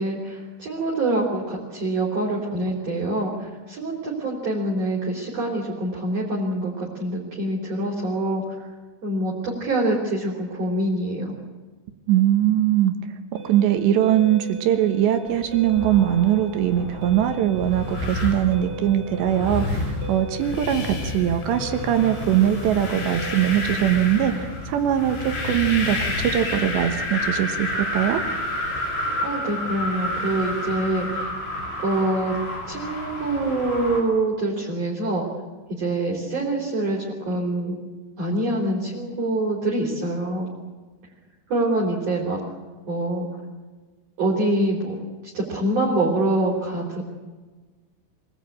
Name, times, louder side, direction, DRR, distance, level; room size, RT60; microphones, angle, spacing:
voice 1, 0.0-8.4 9.0-11.3 29.2-31.3 31.8-32.4 32.7-35.2 35.7-37.8 38.2-40.5 41.5-42.4 42.9-43.3 44.2-44.9 45.3-47.0, right 1 dB, 35° right, -3 dB, 4.8 m, -25 dB
voice 2, 12.1-12.9 13.3-19.8 20.1-27.7 27.9-28.2, right 11 dB, 70° right, 7 dB, 3.2 m, -21 dB
sound 1, 13.3-23.6, right 2 dB, 55° right, 4.7 m, -39 dB
sound 2, 15.5-34.0, left 2 dB, 90° left, 9.0 m, -30 dB
25.5 x 19.0 x 8.8 m, 1.3 s
omnidirectional pair, 5.8 m